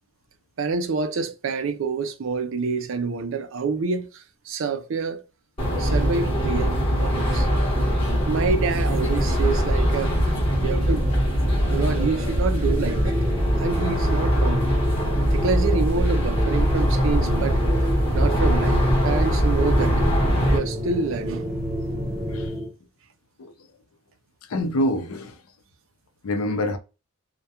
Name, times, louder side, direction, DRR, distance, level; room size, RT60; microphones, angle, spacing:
voice 1, 0.6-5.2 5.8-7.5 8.3-10.1 10.6-11.1 11.6-13.2 13.6-14.7 15.3-17.6 18.1-20.0 20.5-21.5, right 5 dB, 60° right, 0.4 m, -27 dB
sound 1, 5.6-20.6, equal, 25° left, 1.0 m, -22 dB
sound 2, 8.7-22.5, equal, 5° right, 0.8 m, -35 dB
sound 3, 12.5-22.7, equal, 40° right, 0.8 m, -30 dB
voice 2, 24.5-25.4 26.2-26.8, left 1 dB, 75° left, 0.5 m, -26 dB
2.3 x 2.1 x 2.7 m
head